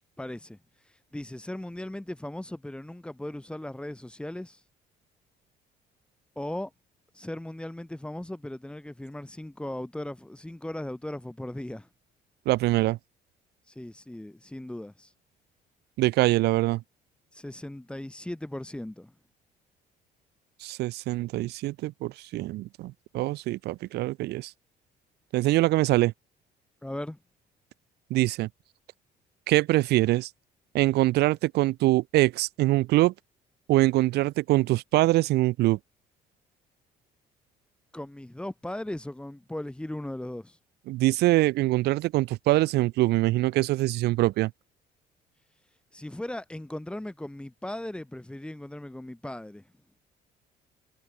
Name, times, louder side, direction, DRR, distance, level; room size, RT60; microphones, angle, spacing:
voice 1, 0.2-0.6 1.1-4.6 6.3-6.7 7.1-11.9 13.7-15.1 17.3-19.1 26.8-27.2 37.9-40.6 45.9-49.6, left 1 dB, 5° left, 1.5 m, -37 dB
voice 2, 12.5-13.0 16.0-16.8 20.6-24.5 25.3-26.1 28.1-28.5 29.5-30.3 30.7-33.1 33.7-35.8 40.9-44.5, right 18 dB, 75° right, 0.7 m, -24 dB
cardioid pair, 110°, 17 cm